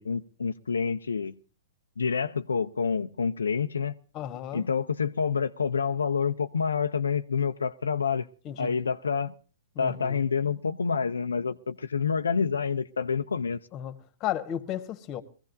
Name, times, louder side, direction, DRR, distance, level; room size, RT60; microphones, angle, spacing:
voice 1, 0.0-1.3 2.0-3.9 4.5-8.3 8.6-9.3 9.8-13.6, left 6 dB, 90° left, 0.6 m, -28 dB
voice 2, 4.1-4.7 8.4-8.7 9.7-10.2 13.7-13.9 14.2-15.2, left 11 dB, 30° left, 1.5 m, -34 dB
21.5 x 15.5 x 2.7 m
hypercardioid pair, 130°, 0 cm